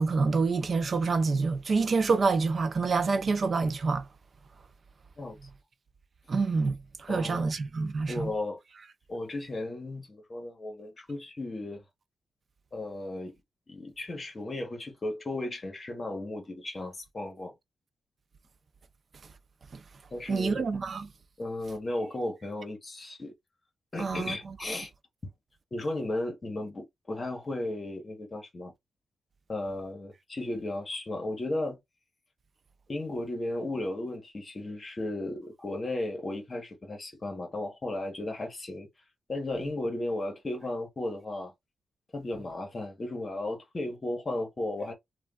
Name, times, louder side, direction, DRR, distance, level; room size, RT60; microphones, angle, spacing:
voice 1, 0.0-4.1 6.3-8.3 19.7-19.8 20.3-21.1 24.0-24.6, right 4 dB, 45° right, 0.4 m, -27 dB
voice 2, 7.1-7.5 8.1-8.6 9.1-11.8 12.7-13.3 13.7-17.5 20.1-20.7 21.4-23.3 23.9-24.9 25.2-25.3 25.7-28.7 29.5-31.8 32.9-38.9 39.3-41.5 42.1-44.9, left 2 dB, 30° left, 1.0 m, -35 dB
3.3 x 2.2 x 2.3 m
wide cardioid pair, 120°, 0 cm